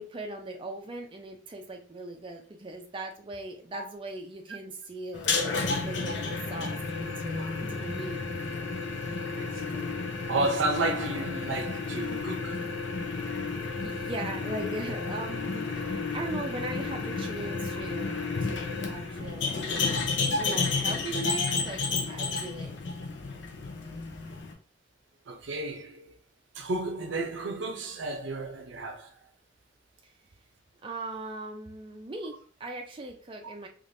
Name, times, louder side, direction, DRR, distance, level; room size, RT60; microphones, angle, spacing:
voice 1, 0.0-8.2 13.8-21.8 22.1-22.9 30.0-30.1 30.8-33.7, right 2 dB, 25° right, 0.4 m, -39 dB
sound 1, 5.1-24.5, left 4 dB, 70° left, 0.6 m, -32 dB
voice 2, 9.2-9.8 10.3-12.7 25.3-26.1 26.6-29.1, right 2 dB, 80° right, 0.6 m, -32 dB
3.2 x 2.5 x 2.6 m
head